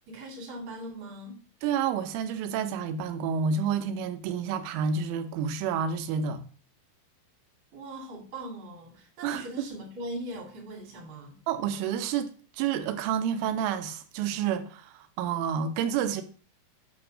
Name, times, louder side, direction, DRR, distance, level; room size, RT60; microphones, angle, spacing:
voice 1, 0.1-1.4 7.7-11.3, right 1 dB, 40° right, 1.9 m, -40 dB
voice 2, 1.6-6.4 9.2-9.5 11.5-12.3 12.6-16.2, right 7 dB, 85° right, 3.3 m, -29 dB
8.6 x 3.6 x 6.0 m
omnidirectional pair, 5.6 m